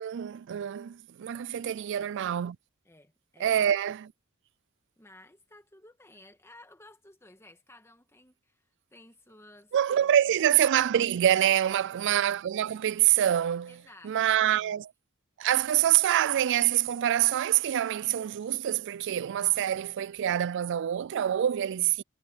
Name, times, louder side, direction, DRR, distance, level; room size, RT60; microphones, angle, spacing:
voice 1, 0.0-2.6 3.4-4.1 9.7-14.9 15.4-22.0, right 11 dB, 60° right, 0.3 m, -26 dB
voice 2, 1.6-2.5 2.8-3.6 5.0-10.4 11.7-11.9 13.7-14.8, left 1 dB, 15° left, 2.0 m, -56 dB
head